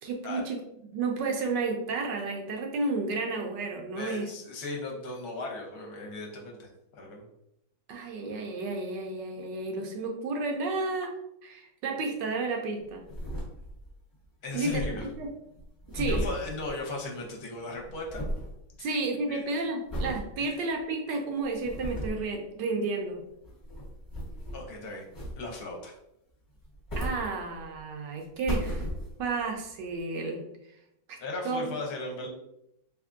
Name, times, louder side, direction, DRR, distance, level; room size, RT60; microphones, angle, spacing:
voice 1, 0.0-4.3 7.9-11.1 11.4-13.0 14.5-14.8 15.2-15.3 15.9-16.2 18.8-23.2 27.0-28.9 29.2-30.4 31.1-31.2 31.4-31.6, right 3 dB, 80° right, 2 dB, 1.3 m, -32 dB
voice 2, 3.9-7.2 14.4-15.1 15.9-18.3 18.8-18.9 19.3-19.5 20.4-20.6 24.5-25.1 25.4-26.0 31.2-32.3, left 2 dB, 65° left, 0 dB, 1.1 m, -37 dB
sound 1, 12.8-14.0 14.2-14.3 14.5-17.3 17.5-18.6 19.0-19.3 19.9-20.3 20.8-20.9 21.4-22.3 23.3-24.7 25.1-25.7 26.5-27.8 28.2-29.4 30.0-30.1, equal, 15° left, 0.7 m, -35 dB
3.4 x 3.4 x 2.5 m, 0.81 s
omnidirectional pair, 1.9 m